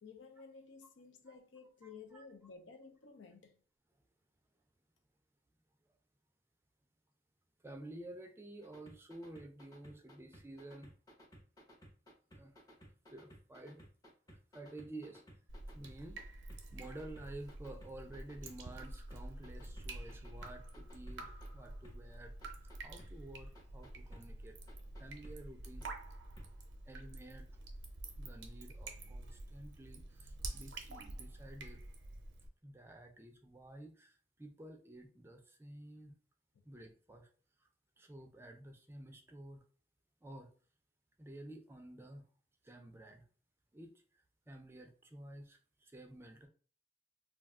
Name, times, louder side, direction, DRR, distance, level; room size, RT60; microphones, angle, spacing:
voice 1, 0.0-3.6, left 5 dB, 85° left, 0.5 m, -54 dB
voice 2, 1.8-2.2 7.6-10.9 12.3-12.6 13.1-13.8 14.5-15.2 15.7-16.2 16.7-22.4 22.8-25.9 26.9-27.5 28.2-31.8 32.6-36.2 36.7-37.3 37.6-37.7 38.0-39.6 40.2-40.5 41.2-42.3 42.6-43.2 43.7-44.0 44.5-46.5, right 1 dB, 15° right, 0.4 m, -51 dB
sound 1, 8.6-16.2 16.5-18.8 19.1-21.5 21.8-21.9 22.4-23.1 23.5-24.2 24.7-25.3 25.8-25.9 26.4-26.5 26.9-27.0, equal, 20° left, 0.7 m, -57 dB
Drip, 15.5-32.5, right 2 dB, 90° right, 0.6 m, -48 dB
2.3 x 2.2 x 3.5 m
head